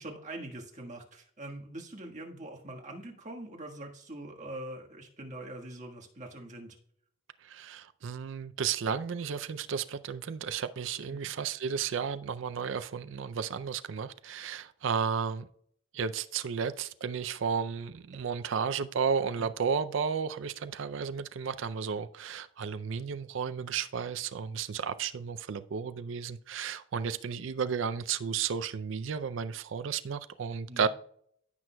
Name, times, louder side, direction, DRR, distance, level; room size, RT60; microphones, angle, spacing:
voice 1, 0.0-6.8 11.1-11.3 30.7-30.9, right 1 dB, 35° right, 1 dB, 1.5 m, -43 dB
voice 2, 7.4-15.5 15.9-30.9, right 6 dB, 70° right, 11 dB, 0.4 m, -33 dB
16.0 x 6.0 x 2.2 m, 0.64 s
head